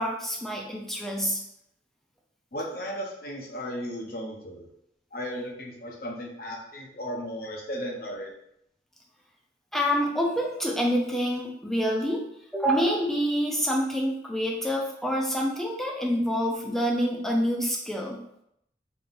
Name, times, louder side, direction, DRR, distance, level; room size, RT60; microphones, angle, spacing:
voice 1, 0.0-1.4 9.7-12.2 12.5-18.2, equal, ahead, -1 dB, 0.6 m, -27 dB
voice 2, 2.5-4.7 5.1-8.3, equal, 55° left, -1 dB, 0.9 m, -35 dB
4.3 x 3.5 x 2.6 m, 0.76 s
head